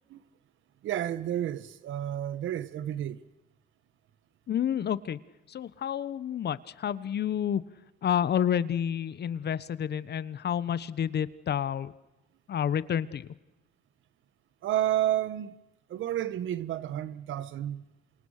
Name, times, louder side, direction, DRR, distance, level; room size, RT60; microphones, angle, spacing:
voice 1, 0.8-3.2 14.6-15.5 15.9-17.8, right 12 dB, 75° right, 1.4 m, -31 dB
voice 2, 4.5-5.2 5.5-7.6 8.0-11.9 12.5-13.3, left 9 dB, 55° left, 1.1 m, -29 dB
28.0 x 26.0 x 6.6 m
cardioid pair, 90°, 20 cm